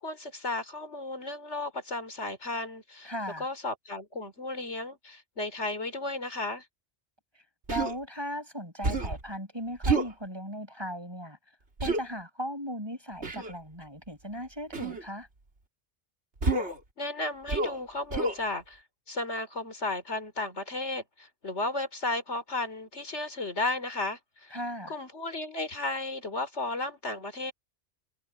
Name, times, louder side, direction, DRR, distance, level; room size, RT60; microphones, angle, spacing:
voice 1, 0.0-3.1 3.4-6.7 17.0-18.8 19.1-24.5 24.9-27.5, left 2 dB, 80° left, 3.7 m, -34 dB
voice 2, 3.0-3.5 7.7-11.4 11.8-15.3 24.5-24.9, equal, 20° right, 6.0 m, -37 dB
Human voice, 7.7-8.0 8.8-9.2 9.8-10.1 11.8-12.0 13.2-13.5 14.7-15.0 16.4-16.8 17.5-17.8 18.1-18.4, right 3 dB, 75° right, 3.2 m, -28 dB
omnidirectional pair, 1.2 m